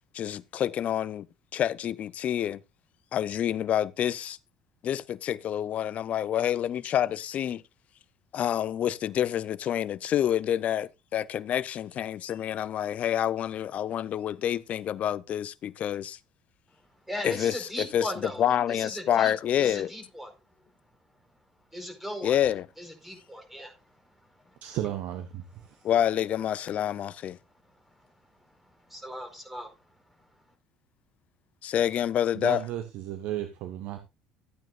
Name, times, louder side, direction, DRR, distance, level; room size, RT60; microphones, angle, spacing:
voice 1, 0.1-1.3 1.5-2.6 3.1-4.4 4.8-7.6 8.3-16.2 17.2-18.1 18.4-19.9 22.2-22.7 25.8-27.4 31.6-32.6, left 10 dB, 50° left, 0.5 m, -28 dB
voice 2, 17.0-18.4 18.7-20.3 21.7-22.3 22.8-23.8 24.2-24.6 25.7-25.8 28.0-28.1 28.4-29.7, left 1 dB, 5° right, 4.6 m, -38 dB
voice 3, 24.6-25.8 32.3-34.0, right 12 dB, 65° right, 1.2 m, -34 dB
14.0 x 9.1 x 2.5 m
hypercardioid pair, 60°, 3 cm